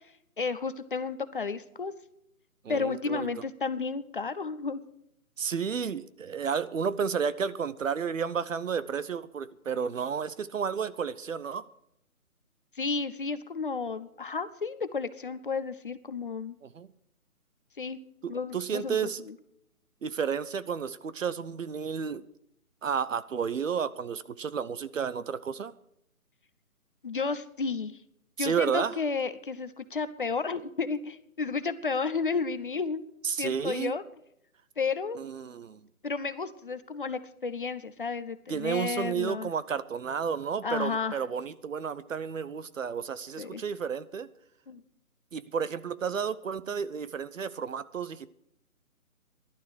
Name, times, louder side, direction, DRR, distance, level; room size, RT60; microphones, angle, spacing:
voice 1, 0.4-1.9 2.7-4.8 12.7-16.6 17.8-18.0 18.3-19.4 27.0-28.0 28.4-33.0 33.4-34.0 34.8-35.2 36.0-39.5 40.6-41.2 43.4-43.6 44.7-44.8, left 4 dB, 35° left, 13 dB, 0.6 m, -32 dB
voice 2, 2.6-3.3 5.4-11.6 16.7-16.9 18.2-19.2 20.0-22.2 22.8-25.7 28.4-28.9 33.2-33.9 35.2-35.8 38.5-44.3 45.3-48.3, right 6 dB, 60° right, 16 dB, 0.9 m, -32 dB
14.5 x 11.5 x 6.3 m, 0.75 s
hypercardioid pair, 160°, 43 cm